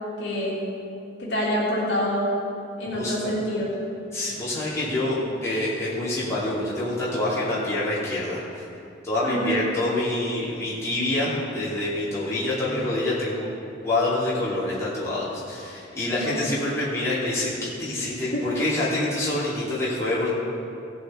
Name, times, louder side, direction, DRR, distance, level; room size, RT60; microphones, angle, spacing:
voice 1, 0.2-0.6 1.2-2.3 2.8-3.7 9.2-9.6 16.2-16.4 18.3-18.4, equal, 60° left, -7 dB, 2.9 m, -26 dB
voice 2, 2.9-3.3 4.1-8.7 9.0-13.4 13.8-20.3, left 1 dB, 15° left, -10 dB, 3.0 m, -26 dB
16.0 x 8.3 x 3.9 m, 2.6 s
head